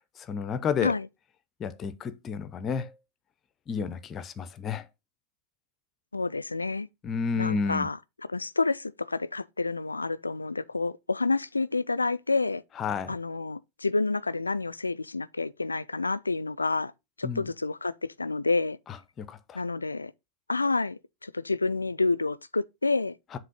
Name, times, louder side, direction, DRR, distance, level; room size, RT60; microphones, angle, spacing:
voice 1, 0.2-0.9 1.6-2.9 3.7-4.9 7.0-7.9 12.8-13.2 17.2-17.5 19.2-19.6 23.3-23.4, left 6 dB, 25° left, 0.6 m, -31 dB
voice 2, 6.1-6.9 7.4-8.0 8.3-12.6 13.1-16.9 17.2-18.8 19.5-20.1 20.5-23.2, left 3 dB, 80° left, 0.3 m, -29 dB
7.4 x 3.1 x 5.2 m
figure-of-eight pair, 90°, 0 cm